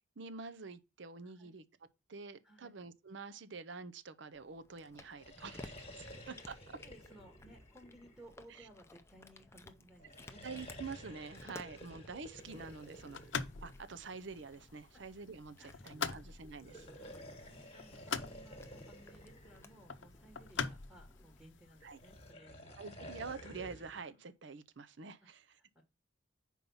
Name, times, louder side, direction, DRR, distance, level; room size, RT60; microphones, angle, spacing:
voice 1, 0.2-1.6 2.1-6.6 8.6-8.7 10.4-15.6 15.8-16.9 21.8-22.0 22.8-25.4, right 4 dB, 65° right, 0.6 m, -47 dB
Cat, 4.3-21.4, left 2 dB, 15° left, 0.5 m, -58 dB
sound 1, 5.1-8.7 10.0-14.3 16.5-20.5 21.8-24.1, equal, 30° left, 1.5 m, -52 dB
voice 2, 6.8-10.4 13.2-13.3 14.9-15.0 15.6-16.1 16.9-22.8 25.2-25.8, right 1 dB, 5° right, 1.3 m, -60 dB
sound 2, 12.4-22.3, left 6 dB, 70° left, 0.6 m, -45 dB
5.4 x 4.6 x 5.4 m
head